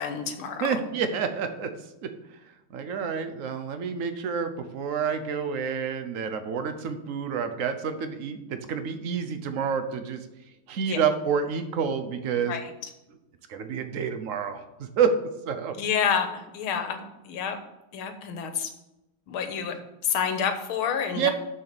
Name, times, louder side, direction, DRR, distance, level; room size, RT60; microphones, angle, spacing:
voice 1, 0.0-0.8 10.9-11.0 12.5-12.7 15.8-17.6 17.9-18.7 19.3-19.7 20.0-21.3, left 7 dB, 75° left, 7 dB, 1.8 m, -28 dB
voice 2, 0.6-1.7 2.0-2.1 2.7-10.2 10.7-12.6 13.5-15.1 15.5-15.7 21.1-21.3, right 6 dB, 70° right, 9 dB, 0.7 m, -28 dB
6.9 x 6.7 x 6.8 m, 0.94 s
omnidirectional pair, 2.4 m